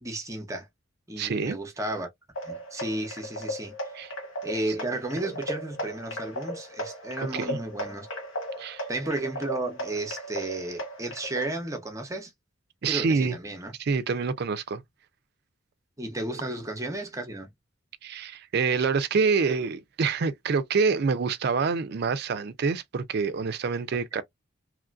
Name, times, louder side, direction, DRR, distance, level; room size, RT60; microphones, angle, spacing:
voice 1, 0.0-0.7 1.1-2.1 2.4-3.7 4.4-8.1 8.9-12.3 12.8-13.7 16.0-17.5 24.1-24.2, right 2 dB, 15° right, 0.7 m, -33 dB
voice 2, 1.2-1.6 3.9-4.1 7.3-7.6 8.6-8.8 12.8-13.4 13.8-14.8 18.0-24.2, right 5 dB, 55° right, 0.4 m, -26 dB
sound 1, 2.4-11.5, equal, 90° left, 1.1 m, -36 dB
3.1 x 2.4 x 2.3 m
head